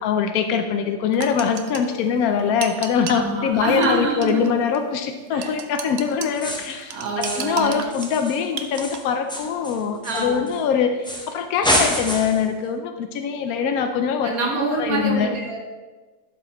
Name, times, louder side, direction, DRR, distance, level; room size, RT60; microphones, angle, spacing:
voice 1, 0.0-15.3, left 7 dB, 85° left, 6 dB, 1.1 m, -23 dB
sound 1, 1.1-3.3 3.8-3.9 4.2-4.5 4.7-4.8 5.4-6.3 6.7-9.0, right 7 dB, 60° right, 0.7 m, -32 dB
voice 2, 3.1-4.4 5.3-5.6 6.9-7.8 10.0-10.5 14.2-15.6, right 2 dB, 85° right, -1 dB, 1.7 m, -25 dB
sound 2, 6.3-6.8 7.2-7.6 7.9-10.6 11.0-11.3 11.6-12.5, equal, 5° left, 0.4 m, -27 dB
12.0 x 4.9 x 3.0 m, 1.3 s
omnidirectional pair, 1.5 m